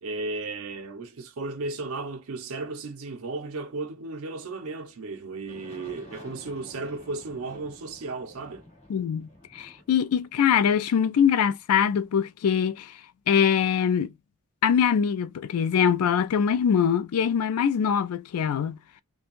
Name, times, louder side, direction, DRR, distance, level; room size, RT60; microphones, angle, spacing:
voice 1, 0.0-8.7, right 3 dB, 80° right, 0.5 m, -35 dB
Aircraft, 5.5-12.2, left 1 dB, 30° left, 1.2 m, -51 dB
voice 2, 8.9-12.9 13.3-14.1 14.6-18.8, left 8 dB, 85° left, 0.3 m, -23 dB
2.5 x 2.2 x 2.9 m
head